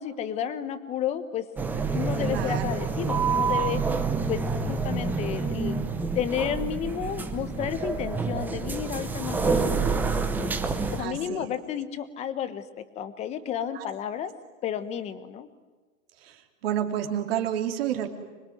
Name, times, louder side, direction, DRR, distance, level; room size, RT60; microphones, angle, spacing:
voice 1, 0.0-1.5 1.9-3.9 4.3-4.4 4.7-5.8 6.1-10.5 10.9-14.3 14.6-15.5, left 9 dB, 15° left, 12 dB, 1.2 m, -32 dB
sound 1, 1.6-11.0, right 4 dB, 5° right, 0.7 m, -28 dB
voice 2, 2.3-2.6 11.0-11.4 13.7-13.9 16.2-18.1, right 10 dB, 45° right, 5 dB, 3.0 m, -30 dB
25.5 x 22.0 x 9.4 m, 1.3 s
hypercardioid pair, 155°, 41 cm